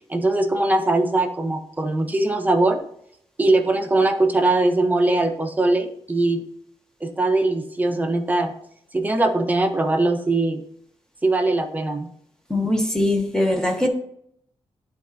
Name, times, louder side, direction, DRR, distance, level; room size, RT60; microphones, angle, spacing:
voice 1, 0.1-2.9 3.4-6.4 7.0-8.5 8.9-10.6 11.2-12.1 12.6-12.7, right 2 dB, 15° right, 4 dB, 0.8 m, -21 dB
voice 2, 12.5-13.9, left 1 dB, 5° left, 1 dB, 1.2 m, -21 dB
11.0 x 4.2 x 2.7 m, 0.70 s
wide cardioid pair, 135°, 10 cm